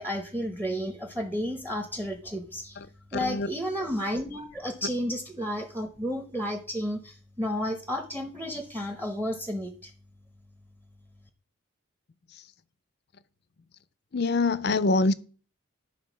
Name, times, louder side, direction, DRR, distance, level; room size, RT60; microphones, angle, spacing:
voice 1, 0.0-2.8 3.1-9.9, equal, 10° right, 0.7 m, -32 dB
voice 2, 14.1-15.1, left 3 dB, 50° left, 0.5 m, -24 dB
11.0 x 3.7 x 6.1 m
head